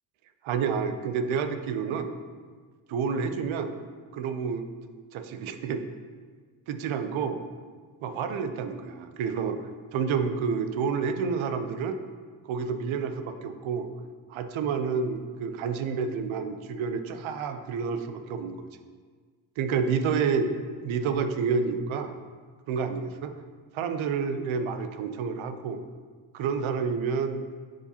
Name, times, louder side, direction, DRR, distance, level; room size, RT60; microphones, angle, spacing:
voice 1, 0.4-2.1 2.9-3.7 4.1-4.7 5.1-5.8 6.7-7.4 8.0-9.6 9.9-12.0 12.4-13.9 14.3-18.7 19.6-20.5 20.8-22.1 22.7-23.3 23.7-25.8 26.3-27.4, right 5 dB, 70° right, 9 dB, 0.8 m, -29 dB
10.5 x 5.0 x 2.9 m, 1.5 s
supercardioid pair, 55°, 49 cm